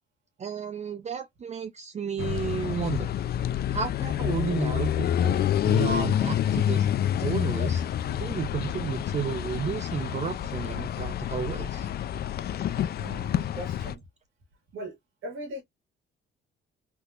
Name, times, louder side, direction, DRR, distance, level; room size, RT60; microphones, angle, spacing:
voice 1, 0.4-3.1 3.7-11.9, right 7 dB, 35° right, 0.4 m, -32 dB
sound 1, 2.2-14.0, left 10 dB, 50° left, 0.4 m, -28 dB
voice 2, 13.0-14.0 14.7-15.0 15.2-15.6, equal, 85° right, 1.6 m, -39 dB
3.5 x 2.8 x 2.4 m
cardioid pair, 90°, 20 cm